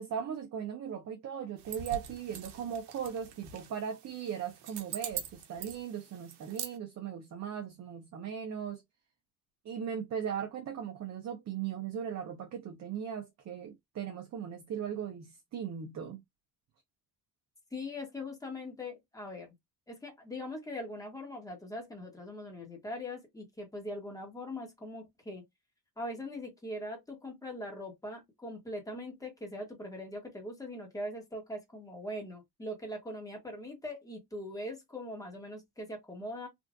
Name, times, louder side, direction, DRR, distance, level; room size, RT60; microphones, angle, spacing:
voice 1, 0.0-8.8 9.6-16.2, right 8 dB, 45° right, 0.7 m, -38 dB
sound 1, 1.6-6.8, right 9 dB, 85° right, 0.9 m, -44 dB
voice 2, 17.7-19.5 19.9-25.4 26.0-36.5, left 1 dB, 10° left, 1.3 m, -41 dB
3.5 x 2.5 x 2.5 m
cardioid pair, 130°, 39 cm